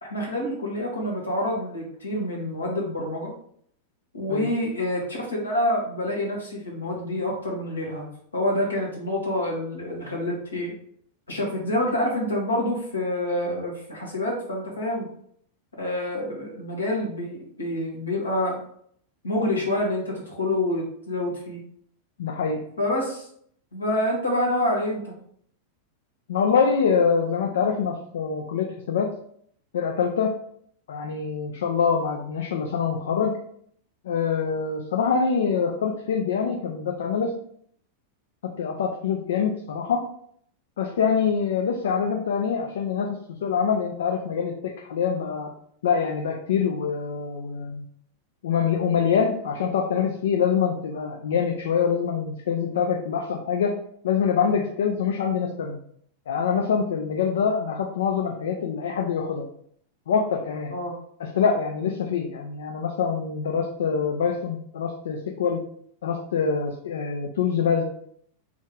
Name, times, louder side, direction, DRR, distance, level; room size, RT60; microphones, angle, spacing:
voice 1, 0.0-3.3 4.1-10.7 11.3-15.1 15.8-18.6 19.2-21.6 22.8-23.3 23.7-25.1 60.7-60.9 61.8-62.0, left 1 dB, 75° left, -3 dB, 1.4 m, -27 dB
voice 2, 22.2-22.6 26.3-29.1 29.7-30.3 30.9-33.3 34.0-37.4 38.4-40.0 40.8-43.2 43.4-45.5 45.8-47.8 48.4-53.7 54.0-55.8 56.3-59.5 60.1-60.7 61.2-65.6 66.0-67.8, left 6 dB, 60° left, 2 dB, 0.4 m, -25 dB
3.5 x 3.0 x 3.7 m, 0.64 s
figure-of-eight pair, 90°, 0 cm